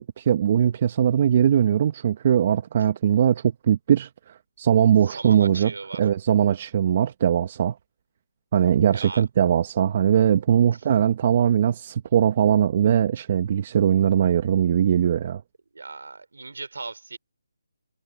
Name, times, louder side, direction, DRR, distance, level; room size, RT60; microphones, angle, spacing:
voice 1, 0.0-5.7 6.0-7.8 8.5-15.4, right 9 dB, 35° right, 1.2 m, -20 dB
voice 2, 5.0-6.1 8.9-9.2 10.7-10.8 15.7-17.2, right 3 dB, 75° right, 3.2 m, -38 dB
figure-of-eight pair, 160°, 0 cm